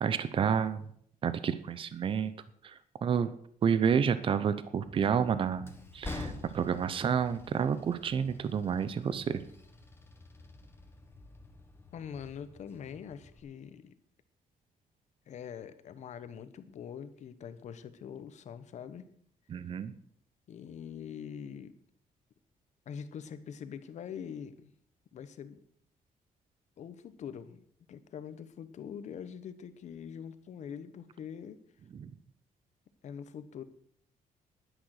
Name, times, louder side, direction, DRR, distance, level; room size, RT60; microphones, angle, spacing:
voice 1, 0.0-0.9 1.2-2.3 2.6-3.3 3.6-9.4 19.5-19.9 32.0-32.1, right 7 dB, 35° right, 14 dB, 0.7 m, -30 dB
Train, 4.8-13.4, left 2 dB, 15° left, 1.4 m, -48 dB
voice 2, 11.9-14.0 15.3-19.1 20.5-21.7 22.9-24.7 25.1-25.6 26.8-31.6 33.0-33.6, left 8 dB, 55° left, 12 dB, 1.0 m, -44 dB
11.5 x 10.0 x 6.5 m, 0.63 s
cardioid pair, 175°, 15 cm